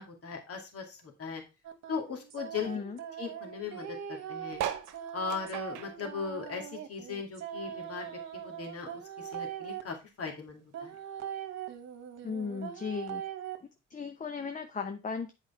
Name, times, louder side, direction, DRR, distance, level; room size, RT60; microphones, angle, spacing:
voice 1, 0.0-1.4 1.9-2.8 3.2-4.6 5.1-8.9 9.2-10.9, left 5 dB, 50° left, 2 dB, 2.5 m, -38 dB
sound 1, 1.6-9.8 10.7-13.6, right 9 dB, 60° right, 1.5 m, -41 dB
voice 2, 2.6-3.0 12.2-13.2 13.9-15.3, left 5 dB, 25° left, 7 dB, 0.8 m, -36 dB
sound 2, 4.5-7.3 7.6-9.2 9.6-9.7 9.9-10.0 10.2-10.6 11.4-11.5, right 10 dB, 85° right, 1.0 m, -40 dB
8.2 x 4.9 x 4.4 m, 0.27 s
cardioid pair, 90°, 30 cm